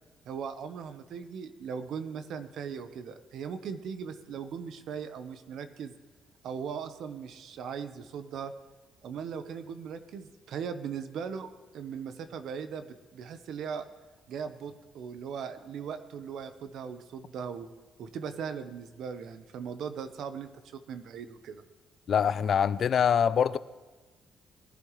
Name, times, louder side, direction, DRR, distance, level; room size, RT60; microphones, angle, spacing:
voice 1, 0.3-5.9 6.4-8.5 9.0-13.8 14.3-17.7 18.0-21.6, right 7 dB, 75° right, 10 dB, 1.0 m, -39 dB
voice 2, 22.1-23.6, left 8 dB, 55° left, 16 dB, 0.5 m, -24 dB
20.0 x 11.0 x 3.2 m, 1.3 s
cardioid pair, 90°, 0 cm